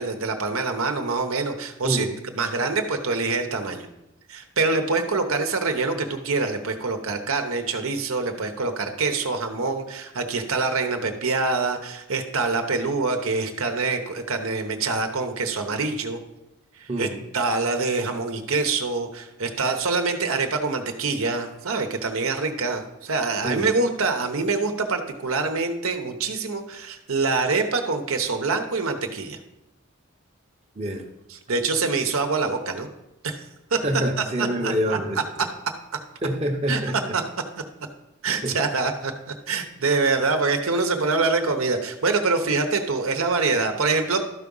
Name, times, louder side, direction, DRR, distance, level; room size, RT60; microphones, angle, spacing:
voice 1, 0.0-2.1 2.4-3.9 4.3-16.2 16.8-29.4 31.3-32.9 33.2-33.4 33.7-33.8 34.4-35.0 36.7-36.8 37.1-37.2 38.2-44.2, right 3 dB, 80° right, 5 dB, 1.0 m, -25 dB
voice 2, 1.8-2.1 16.9-17.2 23.4-23.7 30.8-31.0 33.8-35.5 36.2-37.1 38.4-38.6, equal, 30° right, 2 dB, 0.9 m, -26 dB
12.5 x 4.9 x 5.4 m, 0.91 s
head